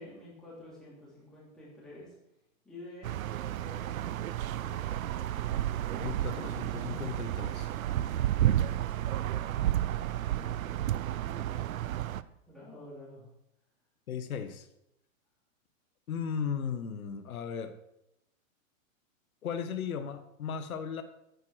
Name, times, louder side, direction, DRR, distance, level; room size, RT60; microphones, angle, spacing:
voice 1, 0.0-2.2 2.6-5.2 10.3-11.0 11.2-13.3, left 1 dB, ahead, -7 dB, 3.1 m, -50 dB
sound 1, 3.0-12.2, right 12 dB, 75° right, 0.7 m, -31 dB
voice 2, 6.0-7.7 14.1-14.7 16.1-17.7 19.4-21.0, left 7 dB, 85° left, 9 dB, 1.5 m, -36 dB
9.6 x 9.3 x 6.3 m, 0.82 s
hypercardioid pair, 175°, 41 cm